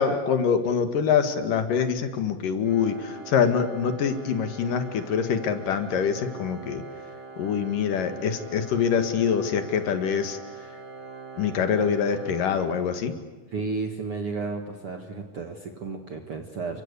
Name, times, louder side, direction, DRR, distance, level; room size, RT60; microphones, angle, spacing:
voice 1, 0.0-6.8 7.4-10.4 11.4-13.1, left 7 dB, 65° left, 8 dB, 3.1 m, -25 dB
Organ, 2.6-13.4, right 4 dB, 30° right, 3.5 m, -43 dB
voice 2, 13.5-16.8, right 4 dB, 50° right, 4 dB, 2.0 m, -32 dB
29.5 x 24.0 x 8.3 m, 1.1 s
omnidirectional pair, 4.4 m